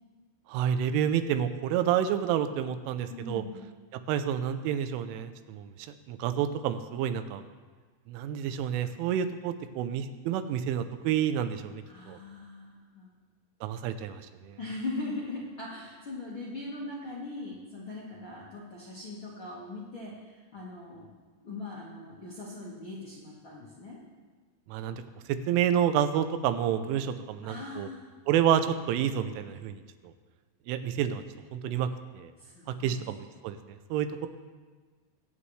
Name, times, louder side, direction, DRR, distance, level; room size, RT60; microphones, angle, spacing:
voice 1, 0.5-3.4 4.1-5.7 6.1-7.4 8.1-12.2 13.6-14.6 24.7-25.0 25.3-27.9 28.3-30.1 30.7-31.2 31.5-31.9 32.1-32.3 32.8-34.3, right 9 dB, 85° right, 10 dB, 3.2 m, -29 dB
voice 2, 3.1-3.6 11.8-13.1 14.6-21.1 21.4-24.0 27.4-28.1 32.4-32.9, left 2 dB, 75° left, -7 dB, 1.1 m, -40 dB
23.0 x 8.4 x 3.3 m, 1.5 s
omnidirectional pair, 5.5 m